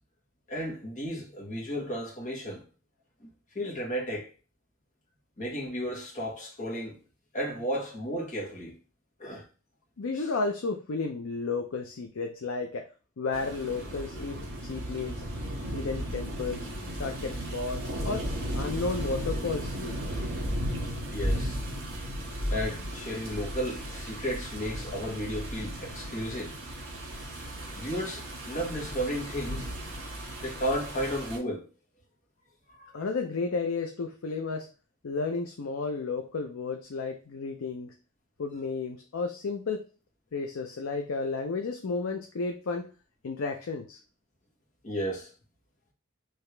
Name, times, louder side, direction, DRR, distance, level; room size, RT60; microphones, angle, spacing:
voice 1, 0.5-2.6 3.5-4.3 5.4-6.9 7.3-8.7 9.2-9.4 21.1-21.6 22.5-26.5 27.7-29.7 30.4-31.6 32.8-32.9 44.8-45.3, equal, 35° left, 1.4 m, -33 dB
voice 2, 10.0-12.8 13.2-15.2 15.7-16.7 17.0-18.3 18.6-19.9 32.9-34.7 35.0-37.9 38.4-39.9 40.3-42.9 43.2-44.0, left 4 dB, 70° left, 0.5 m, -32 dB
sound 1, 13.3-31.4, equal, 60° right, 1.8 m, -35 dB
4.8 x 2.9 x 3.3 m
head